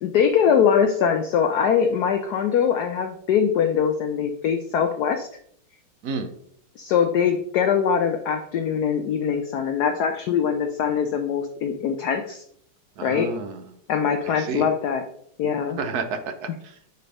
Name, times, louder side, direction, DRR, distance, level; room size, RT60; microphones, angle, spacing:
voice 1, 0.0-5.3 6.8-12.4 13.0-13.3 13.9-15.0 15.4-15.8, left 7 dB, 70° left, 5 dB, 0.9 m, -22 dB
voice 2, 13.0-13.6 14.2-14.7 15.8-16.9, right 4 dB, 65° right, 8 dB, 1.0 m, -31 dB
6.7 x 3.3 x 5.3 m, 0.64 s
omnidirectional pair, 2.3 m